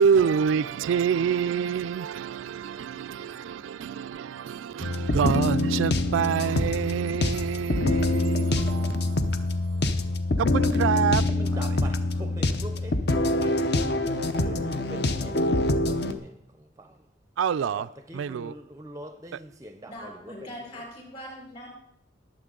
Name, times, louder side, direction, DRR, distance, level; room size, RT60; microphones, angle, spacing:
voice 1, 0.0-9.5 10.4-11.8 17.4-17.9 18.1-18.5, right 7 dB, 80° right, 0.3 m, -27 dB
sound 1, 4.8-16.1, left 2 dB, 55° left, 0.8 m, -25 dB
voice 2, 11.2-17.0 17.6-20.5, right 1 dB, 15° right, 0.5 m, -44 dB
voice 3, 19.9-21.7, equal, 35° left, 4.6 m, -41 dB
20.5 x 7.6 x 3.8 m
head